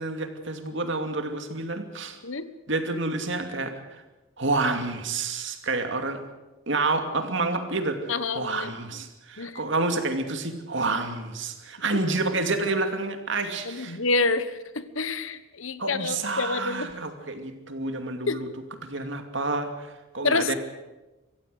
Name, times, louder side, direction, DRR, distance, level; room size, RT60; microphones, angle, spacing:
voice 1, 0.0-2.2 2.7-4.0 4.4-6.2 6.7-14.0 15.8-18.5 18.8-19.9 20.1-20.5, right 3 dB, 55° right, 6 dB, 2.5 m, -29 dB
voice 2, 8.1-8.7 9.4-9.5 11.9-12.0 13.6-14.6 14.9-16.9 18.3-18.4 20.2-20.5, left 3 dB, 65° left, 13 dB, 1.2 m, -27 dB
24.5 x 15.5 x 8.0 m, 1.1 s
head